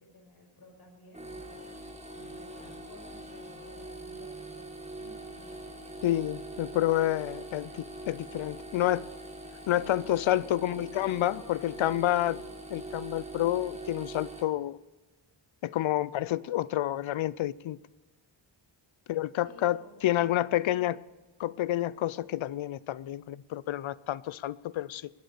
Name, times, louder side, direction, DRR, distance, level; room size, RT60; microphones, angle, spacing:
voice 1, 0.0-6.4 9.6-12.5 19.4-21.1, left 1 dB, 50° left, 5.3 m, -54 dB
sound 1, 1.1-14.4, right 2 dB, 15° right, 1.6 m, -43 dB
voice 2, 6.0-9.1 9.7-12.4 12.7-14.8 15.6-17.8 19.1-19.8 20.0-21.0 21.4-25.1, left 13 dB, 75° left, 0.5 m, -29 dB
20.0 x 7.7 x 6.7 m
wide cardioid pair, 105°, 48 cm